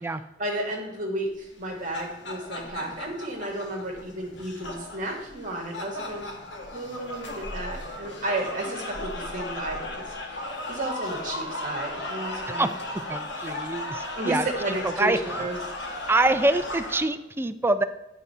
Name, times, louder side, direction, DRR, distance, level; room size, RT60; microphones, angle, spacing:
voice 1, 0.4-6.3 6.7-12.7 14.2-15.6 15.9-16.1, right 1 dB, 45° right, 0 dB, 1.6 m, -33 dB
sound 1, 1.6-17.0, left 1 dB, 70° left, 1.5 m, -36 dB
voice 2, 13.1-14.5 15.0-15.5 16.1-17.8, right 2 dB, 10° right, 10 dB, 0.4 m, -25 dB
11.0 x 4.0 x 5.5 m, 0.96 s
head